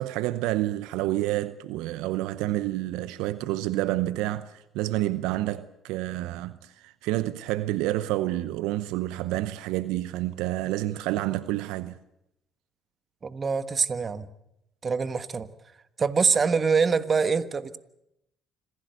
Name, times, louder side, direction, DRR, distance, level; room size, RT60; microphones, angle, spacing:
voice 1, 0.0-12.0, right 15 dB, 75° right, 0.7 m, -29 dB
voice 2, 13.2-14.3 14.8-15.5 16.0-17.8, right 5 dB, 35° right, 1.4 m, -24 dB
26.5 x 16.0 x 8.0 m
hypercardioid pair, 60°, 0 cm